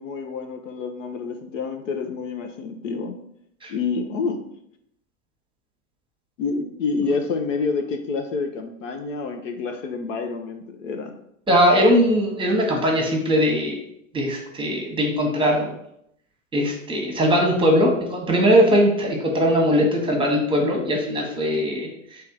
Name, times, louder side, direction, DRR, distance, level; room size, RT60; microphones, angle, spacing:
voice 1, 0.0-3.1 3.7-4.4 6.4-11.1, left 4 dB, 70° left, 5 dB, 0.8 m, -28 dB
voice 2, 11.5-13.8 14.1-15.7 16.5-21.9, equal, 15° right, 1 dB, 1.0 m, -20 dB
3.4 x 3.1 x 4.6 m, 0.73 s
hypercardioid pair, 100°, 40 cm